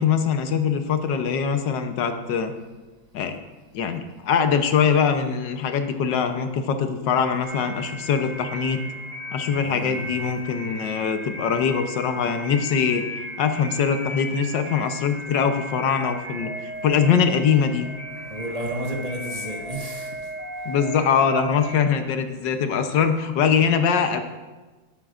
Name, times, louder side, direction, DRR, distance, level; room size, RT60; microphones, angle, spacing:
voice 1, 0.0-2.5 3.1-3.4 3.7-8.8 9.3-13.0 13.4-17.9 20.6-24.2, left 6 dB, 70° left, 7 dB, 1.5 m, -22 dB
sound 1, 7.4-21.8, equal, 60° right, 4.7 m, -36 dB
voice 2, 9.6-10.1 18.2-20.7, right 1 dB, 20° right, -1 dB, 1.5 m, -33 dB
18.0 x 9.4 x 2.5 m, 1.2 s
omnidirectional pair, 2.1 m